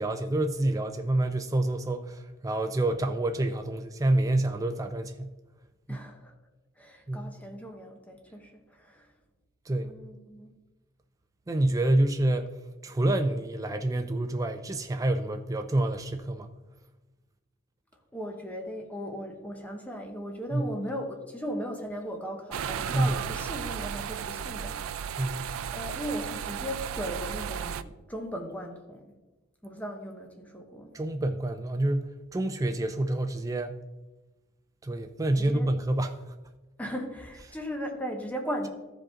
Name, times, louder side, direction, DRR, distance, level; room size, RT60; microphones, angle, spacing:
voice 1, 0.0-5.3 5.9-6.0 7.1-7.3 9.7-9.9 11.5-12.5 12.8-16.5 20.5-20.6 22.9-23.1 25.2-25.5 30.9-33.8 34.8-36.2, right 1 dB, 15° right, 0.4 m, -27 dB
voice 2, 5.9-6.3 6.8-9.1 9.7-10.6 18.1-25.3 25.7-29.2 29.6-31.0 35.4-35.7 36.8-38.7, equal, 5° left, 0.9 m, -37 dB
sound 1, 22.5-27.8, right 8 dB, 85° right, 0.4 m, -34 dB
14.0 x 5.1 x 3.7 m
head